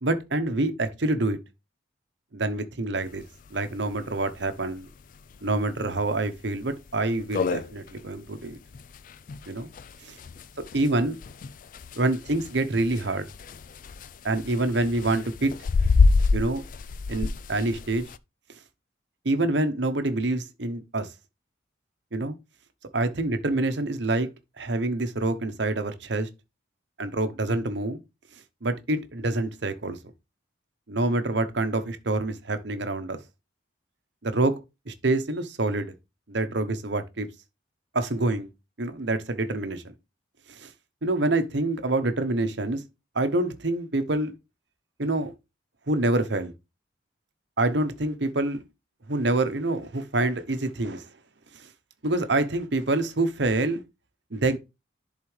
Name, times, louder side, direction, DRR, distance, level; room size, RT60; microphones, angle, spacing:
voice 1, 0.0-1.4 2.3-3.2 3.5-4.9 5.4-8.6 9.5-9.7 10.0-10.2 10.7-11.2 12.0-13.3 14.2-15.5 16.3-16.6 17.1-18.1 19.2-21.1 22.1-22.3 22.9-24.3 24.6-26.3 27.0-28.0 28.6-30.0 30.9-33.2 34.2-34.6 34.9-35.9 36.3-37.3 37.9-38.5 38.8-39.8 40.5-40.7 41.0-42.8 43.1-44.3 45.0-45.3 45.9-46.5 47.6-48.6 49.1-51.1 51.5-51.7 52.0-53.8 54.3-54.6, right 2 dB, 65° right, 1.0 m, -26 dB
sound 1, 3.1-3.2 3.5-3.6 3.9-4.0 4.6-4.8 5.3-5.4 5.9-6.0 6.4-6.5 6.9-7.0 7.1-18.2, left 4 dB, 45° left, 0.3 m, -27 dB
11.0 x 4.0 x 3.2 m
head